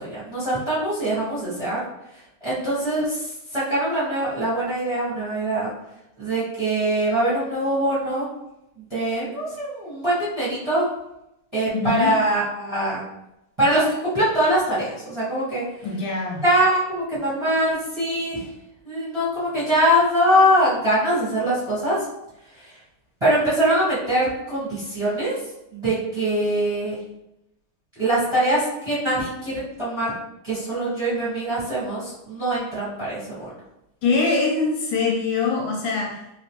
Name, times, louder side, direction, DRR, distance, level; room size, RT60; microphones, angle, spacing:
voice 1, 0.0-1.8 2.1-5.7 6.2-8.3 8.8-10.9 11.5-13.0 13.6-15.6 16.4-18.5 18.8-22.0 22.5-22.8 23.2-25.3 25.7-27.0 27.9-30.1 30.4-33.5, right 1 dB, 20° right, -9 dB, 0.9 m, -23 dB
voice 2, 11.7-12.2 15.8-16.4 34.0-36.2, left 4 dB, 75° left, 0 dB, 1.2 m, -23 dB
3.1 x 2.9 x 3.0 m, 0.86 s
omnidirectional pair, 2.4 m